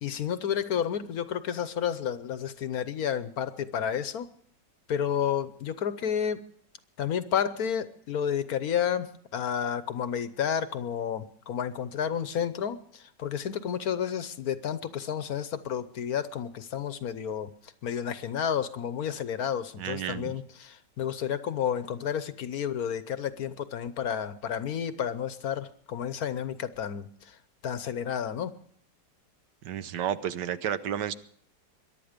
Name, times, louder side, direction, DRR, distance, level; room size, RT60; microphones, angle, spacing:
voice 1, 0.0-4.3 4.9-6.4 7.0-9.1 9.3-12.7 13.2-17.5 17.8-20.4 21.0-27.1 27.6-28.5, left 8 dB, 60° left, 13 dB, 1.2 m, -31 dB
voice 2, 19.8-20.4 29.6-31.1, right 9 dB, 75° right, 13 dB, 1.4 m, -31 dB
22.5 x 11.0 x 5.1 m, 0.62 s
omnidirectional pair, 1.9 m